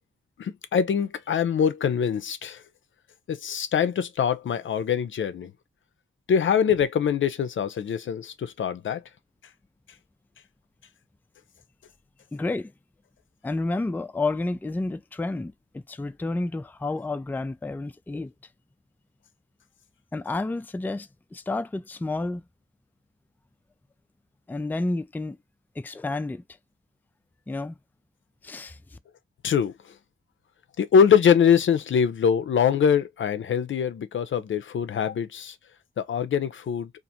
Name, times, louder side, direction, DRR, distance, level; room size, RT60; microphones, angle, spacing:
voice 1, 0.4-2.6 3.3-5.5 6.3-9.0 29.4-29.9 30.8-35.5 36.0-36.9, left 7 dB, 70° left, 0.5 m, -23 dB
voice 2, 12.3-12.7 13.4-18.3 20.1-22.4 24.5-25.4 25.8-26.4 27.5-27.8 28.4-29.0, left 2 dB, 10° left, 0.3 m, -30 dB
2.5 x 2.5 x 2.8 m
supercardioid pair, 40°, 21 cm